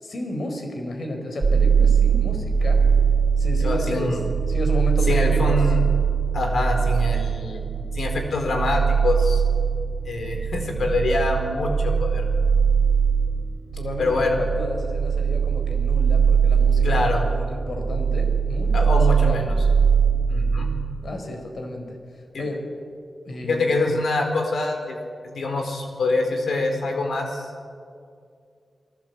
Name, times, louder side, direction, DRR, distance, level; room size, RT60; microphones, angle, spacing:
voice 1, 0.0-2.8 3.4-4.2 4.5-5.6 13.7-19.4 21.0-22.0 22.4-22.6 23.2-24.0, left 1 dB, 65° left, 4 dB, 4.5 m, -32 dB
sound 1, 1.4-20.8, right 6 dB, 50° right, 1.9 m, -21 dB
voice 2, 3.6-4.2 5.1-5.8 6.3-7.6 7.9-9.4 10.0-12.3 14.0-14.4 16.8-17.3 18.7-19.5 20.3-20.7 22.3-22.4 23.4-25.0 25.2-27.5, left 2 dB, 85° left, 4 dB, 4.4 m, -25 dB
29.0 x 19.0 x 8.2 m, 2.3 s
wide cardioid pair, 135°, 0 cm